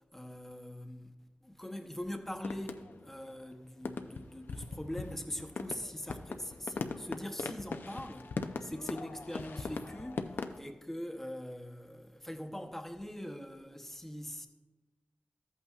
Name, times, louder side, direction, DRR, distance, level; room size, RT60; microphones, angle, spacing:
voice 1, 0.1-1.1 1.4-8.3 8.6-14.5, left 1 dB, 10° left, 0.8 m, -42 dB
sound 1, 2.4-3.2 3.5-3.6 3.8-10.6, left 4 dB, 80° left, 0.5 m, -40 dB
13.5 x 8.3 x 2.4 m
wide cardioid pair, 75°, 4 cm